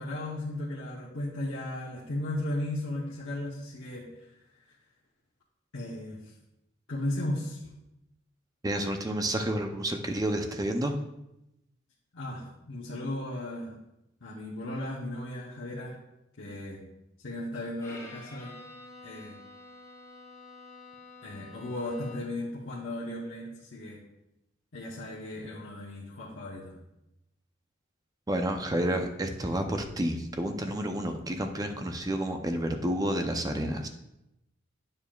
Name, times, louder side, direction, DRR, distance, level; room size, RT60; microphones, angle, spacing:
voice 1, 0.0-4.1 5.7-6.2 6.9-7.7 12.1-13.7 14.2-16.0 16.4-16.8 17.2-18.6 19.0-19.4 21.2-24.0 24.7-26.7, left 1 dB, 75° left, -5 dB, 1.0 m, -35 dB
voice 2, 8.6-11.0 28.3-33.9, right 1 dB, 20° right, 5 dB, 0.5 m, -30 dB
Bowed string instrument, 17.8-22.5, left 2 dB, 15° left, 1.3 m, -49 dB
8.9 x 6.9 x 2.3 m, 0.89 s
head